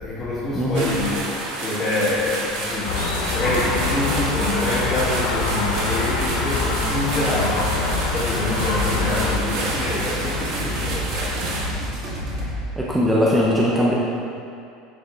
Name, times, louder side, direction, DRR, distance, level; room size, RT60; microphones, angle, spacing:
voice 1, 0.0-2.9 3.3-11.5 11.8-12.8, left 2 dB, 20° left, -12 dB, 1.7 m, -26 dB
voice 2, 0.5-0.9 12.8-13.9, equal, 5° right, -5 dB, 0.7 m, -19 dB
sound 1, 0.7-11.7, right 2 dB, 65° right, 1.4 m, -29 dB
Gull seagull, 2.8-9.4, left 4 dB, 75° left, 0.9 m, -25 dB
sound 2, 7.4-12.6, equal, 40° right, 1.9 m, -30 dB
9.4 x 5.2 x 3.8 m, 2.5 s
cardioid pair, 165°, 0 cm